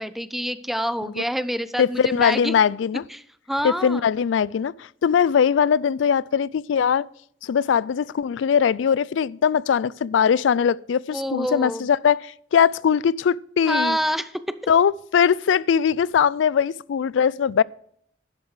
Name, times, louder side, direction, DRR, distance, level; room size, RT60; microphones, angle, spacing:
voice 1, 0.0-2.5 3.1-3.2 3.5-4.0 11.1-11.8 13.7-14.3, equal, ahead, 0.5 m, -26 dB
voice 2, 1.8-3.0 3.6-7.1 7.4-14.0 14.7-17.6, left 7 dB, 80° left, 0.3 m, -21 dB
11.5 x 7.3 x 4.8 m
head